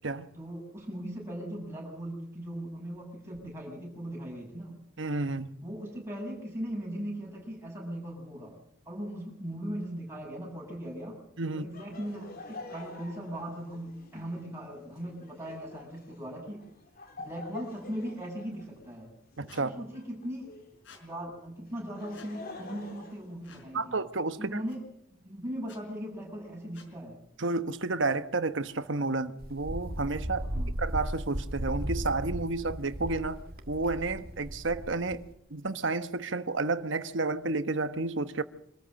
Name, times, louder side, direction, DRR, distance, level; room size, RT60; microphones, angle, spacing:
voice 1, 0.3-4.8 5.6-8.6 8.9-11.2 11.5-16.6 17.2-19.1 19.6-20.5 21.0-24.0 24.4-24.8 25.2-27.2 30.4-30.8, equal, 15° right, 7.5 m, -39 dB
voice 2, 5.0-5.5 11.4-11.6 19.4-19.7 23.7-24.6 27.4-30.5 30.8-33.4 33.7-35.2 35.5-38.4, right 3 dB, 60° right, 1.2 m, -31 dB
Laughter, 11.7-20.8 21.7-24.0, left 2 dB, 45° left, 3.9 m, -48 dB
Squeak, 19.5-19.6 20.8-21.0 22.1-22.3 23.4-23.7 24.7-24.8 25.6-25.8 26.7-26.9, left 5 dB, 65° left, 4.8 m, -53 dB
Wind, 29.4-35.3, right 1 dB, 45° right, 1.7 m, -36 dB
25.0 x 14.0 x 7.6 m
head